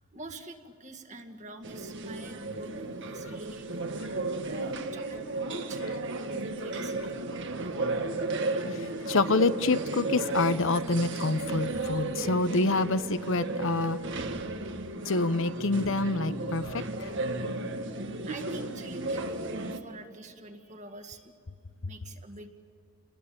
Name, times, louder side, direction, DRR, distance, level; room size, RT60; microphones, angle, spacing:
voice 1, 0.1-5.2 5.7-5.8 6.4-7.1 7.6-7.9 8.4-8.5 8.9-9.0 18.3-21.3 21.8-22.5, right 2 dB, 35° right, 6 dB, 2.1 m, -46 dB
sound 1, 1.6-19.8, right 2 dB, 60° right, 1.7 m, -34 dB
voice 2, 8.7-14.0 15.1-17.1 21.8-21.9, left 3 dB, 65° left, 13 dB, 0.8 m, -27 dB
29.5 x 21.0 x 8.7 m, 2.3 s
head